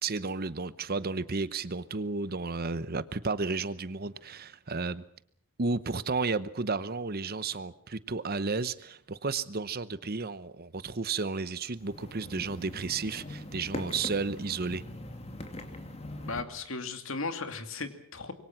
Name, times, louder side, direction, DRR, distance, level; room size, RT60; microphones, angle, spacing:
voice 1, 0.0-5.0 5.6-14.8, right 4 dB, 45° right, 0.9 m, -32 dB
sound 1, 11.8-16.4, left 1 dB, 30° left, 2.7 m, -41 dB
voice 2, 16.2-18.3, left 3 dB, 60° left, 2.5 m, -36 dB
26.0 x 22.5 x 6.0 m
head